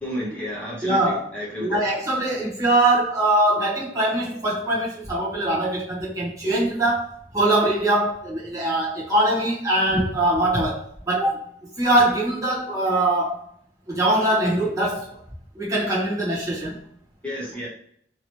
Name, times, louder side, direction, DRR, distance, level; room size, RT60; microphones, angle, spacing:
voice 1, 0.0-1.8 17.2-17.7, equal, 5° left, -6 dB, 1.1 m, -31 dB
voice 2, 0.8-1.3 1.6-11.4 11.8-13.4 13.9-15.1 15.5-16.8, right 1 dB, 20° right, -7 dB, 1.0 m, -22 dB
3.0 x 2.8 x 3.0 m, 0.65 s
head